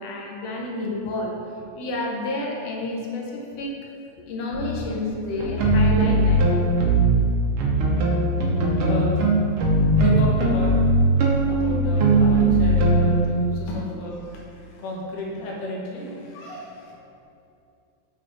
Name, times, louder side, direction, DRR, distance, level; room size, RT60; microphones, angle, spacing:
voice 1, 0.0-1.3 1.8-3.7 4.3-6.5, left 2 dB, 70° left, -1 dB, 1.7 m, -30 dB
sound 1, 4.5-4.8 5.4-7.2 7.6-13.2, right 2 dB, 85° right, 1.2 m, -19 dB
voice 2, 8.9-9.2 9.9-10.7 11.4-17.0, left 1 dB, 90° left, -3 dB, 2.7 m, -33 dB
8.8 x 4.4 x 3.9 m, 2.5 s
omnidirectional pair, 3.6 m